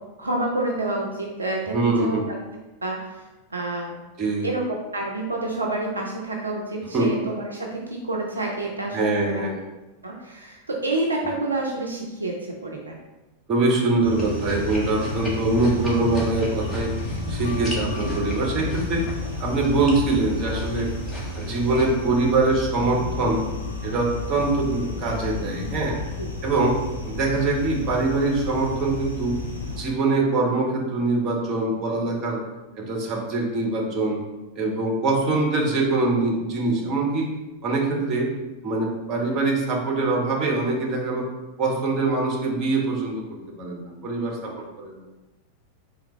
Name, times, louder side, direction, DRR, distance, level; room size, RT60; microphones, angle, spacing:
voice 1, 0.2-2.4 2.8-3.2 3.5-3.9 4.4-9.4 10.0-12.9 26.2-26.3, right 2 dB, 75° right, 0 dB, 0.5 m, -28 dB
voice 2, 1.7-2.2 4.2-4.5 6.9-7.1 8.9-9.6 13.5-16.9 17.3-19.0 19.4-20.9 21.3-23.5 23.8-26.0 26.4-26.8 27.1-29.3 29.7-32.4 32.8-34.2 34.6-37.3 37.6-38.3 38.6-41.3 41.6-44.5 44.8-44.9, right 3 dB, 35° right, -1 dB, 1.0 m, -23 dB
sound 1, 14.0-29.8, left 3 dB, 80° left, 0.9 m, -32 dB
sound 2, 14.2-21.9, right 2 dB, 15° left, 1.1 m, -34 dB
3.8 x 2.8 x 4.2 m, 1.1 s
figure-of-eight pair, 90°, 0 cm